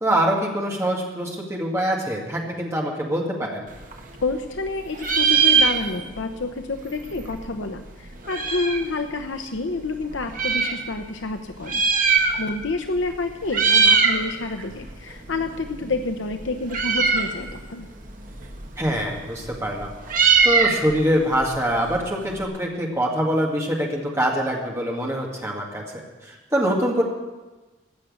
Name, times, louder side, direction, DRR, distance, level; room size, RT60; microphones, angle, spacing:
voice 1, 0.0-3.7 18.8-19.9 20.4-27.0, equal, 15° right, -1 dB, 2.0 m, -24 dB
Meow, 3.7-4.7 4.9-6.2 6.5-6.6 6.8-8.9 9.6-10.8 11.5-12.7 13.0-13.2 13.5-14.2 14.6-22.4, right 5 dB, 45° right, 1.3 m, -22 dB
voice 2, 4.2-11.8 12.4-17.9, left 3 dB, 80° left, 6 dB, 0.8 m, -29 dB
16.0 x 6.5 x 8.7 m, 1.2 s
head